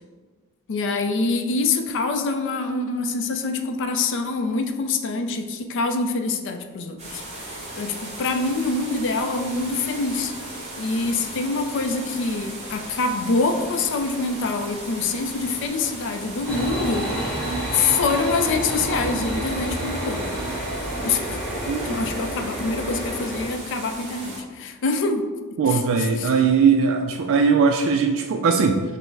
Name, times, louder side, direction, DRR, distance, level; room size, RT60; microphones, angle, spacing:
voice 1, 0.7-7.2 7.5-10.3 10.8-17.5 17.7-20.3 21.0-21.2 21.9-25.2 25.7-26.3, left 3 dB, 55° left, 7 dB, 0.4 m, -25 dB
sound 1, 7.0-24.4, right 1 dB, 30° right, 1.3 m, -37 dB
sound 2, 16.5-23.5, right 1 dB, 5° left, 1.2 m, -29 dB
voice 2, 21.7-22.0 25.6-28.8, right 5 dB, 60° right, 3 dB, 0.3 m, -19 dB
5.4 x 2.0 x 4.6 m, 1.4 s
head